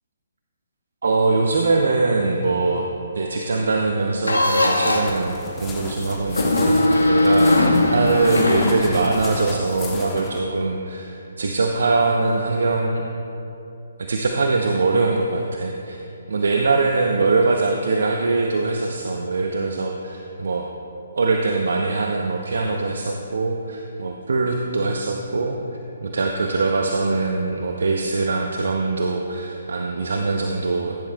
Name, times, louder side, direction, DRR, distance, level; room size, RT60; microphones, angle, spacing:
voice 1, 1.0-2.9 3.1-13.1 14.0-16.0 16.3-20.7 21.2-25.6 26.0-31.0, right 3 dB, 65° right, 2 dB, 0.7 m, -22 dB
sound 1, 4.2-5.2 6.3-9.4, left 2 dB, 85° left, 1.5 m, -19 dB
sound 2, 5.0-10.4, left 2 dB, 15° left, 1.2 m, -34 dB
15.0 x 10.5 x 2.3 m, 2.8 s
figure-of-eight pair, 140°, 0 cm